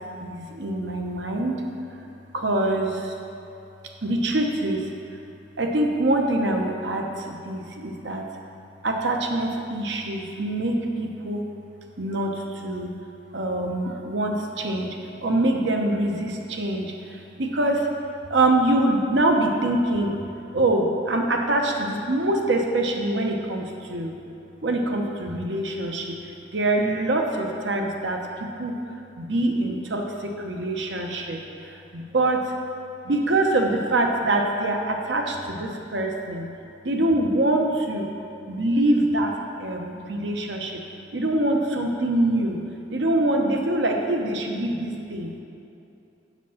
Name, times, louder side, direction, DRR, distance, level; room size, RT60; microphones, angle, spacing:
voice 1, 0.2-1.6 2.3-3.1 4.0-4.8 5.6-8.2 8.8-11.4 12.0-12.9 13.3-17.9 18.3-20.1 20.5-24.1 24.6-26.2 26.5-28.8 29.2-31.4 31.7-32.5 33.0-36.5 36.8-38.1 38.5-39.3 39.6-40.8 41.1-42.6 42.9-45.3, right 1 dB, 70° right, 2 dB, 1.0 m, -24 dB
7.5 x 7.2 x 5.7 m, 2.7 s
head